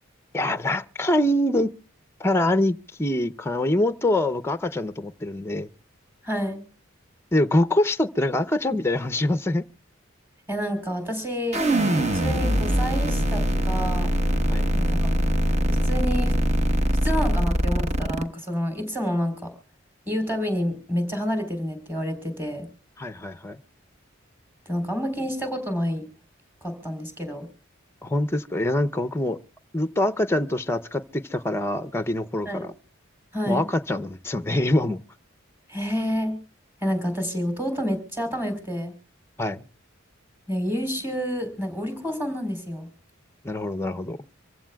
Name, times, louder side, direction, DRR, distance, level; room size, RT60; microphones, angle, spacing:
voice 1, 0.3-1.7 2.2-5.7 7.3-9.6 14.5-14.6 23.0-23.6 28.0-29.4 29.7-32.7 33.5-35.0 39.4-39.7 43.4-44.2, left 1 dB, 10° left, 0.6 m, -24 dB
voice 2, 6.2-6.6 10.5-11.6 12.1-14.1 14.7-15.1 15.7-16.3 17.0-19.5 20.1-22.7 24.7-26.0 26.6-27.5 32.5-32.7 33.3-33.7 35.7-36.3 36.8-38.9 40.5-42.9, equal, 10° right, 3.7 m, -28 dB
sound 1, 11.5-18.2, equal, 35° right, 1.1 m, -22 dB
25.5 x 15.0 x 2.3 m
head